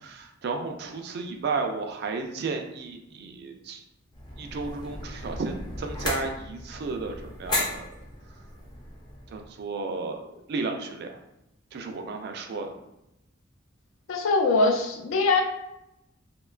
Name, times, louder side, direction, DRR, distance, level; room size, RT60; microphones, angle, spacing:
voice 1, 0.0-3.8 4.4-7.9 9.3-10.2 10.5-11.2 11.7-12.7, right 3 dB, 55° right, 5 dB, 0.3 m, -33 dB
sound 1, 4.1-9.5, left 1 dB, 20° left, 0.4 m, -35 dB
voice 2, 14.1-15.4, left 3 dB, 80° left, 1 dB, 0.4 m, -22 dB
2.8 x 2.2 x 2.3 m, 0.87 s
head